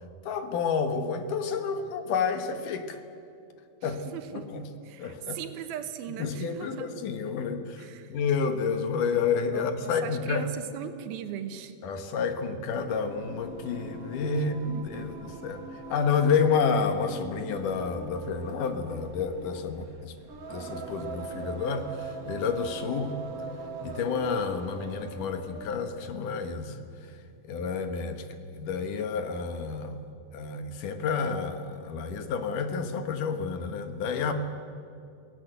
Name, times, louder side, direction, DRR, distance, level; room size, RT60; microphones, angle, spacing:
voice 1, 0.2-3.0 3.8-4.6 5.0-5.4 6.1-10.5 11.8-20.1 20.5-23.2 23.8-27.2 27.4-30.0 30.3-34.3, left 5 dB, 65° left, 8 dB, 2.7 m, -30 dB
voice 2, 3.8-6.9 7.8-8.1 9.5-11.7 14.7-15.3, right 9 dB, 90° right, 8 dB, 3.1 m, -39 dB
Singing, 12.7-25.9, right 4 dB, 65° right, 0.8 m, -41 dB
28.0 x 17.5 x 8.1 m, 2.6 s
omnidirectional pair, 4.2 m